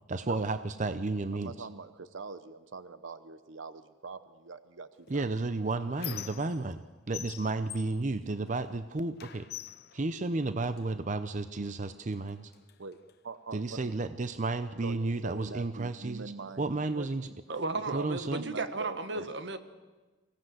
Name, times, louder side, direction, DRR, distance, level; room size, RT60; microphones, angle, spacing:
voice 1, 0.1-1.5 5.1-9.5 9.9-12.5 13.5-16.3 16.6-17.3 17.9-18.5, right 3 dB, 40° right, 11 dB, 0.6 m, -32 dB
voice 2, 1.3-5.2 12.8-13.0 13.2-14.0 14.8-16.8 17.9-19.3, right 4 dB, 90° right, 13 dB, 0.8 m, -43 dB
Squeak, 5.1-6.8 7.1-8.8 9.2-10.9 11.7-11.8 12.1-13.1, left 11 dB, 55° left, 0.7 m, -45 dB
voice 3, 17.5-19.6, right 3 dB, 65° right, 9 dB, 1.4 m, -35 dB
24.5 x 17.0 x 7.9 m, 1.2 s
head